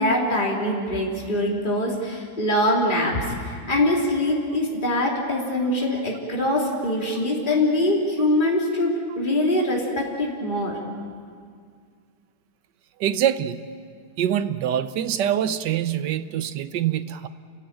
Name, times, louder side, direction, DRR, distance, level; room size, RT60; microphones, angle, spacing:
voice 1, 0.0-10.7, left 1 dB, 25° left, -3 dB, 3.6 m, -23 dB
voice 2, 13.0-13.6 14.2-17.3, right 10 dB, 85° right, 12 dB, 1.5 m, -24 dB
29.0 x 16.0 x 9.0 m, 2.1 s
omnidirectional pair, 1.8 m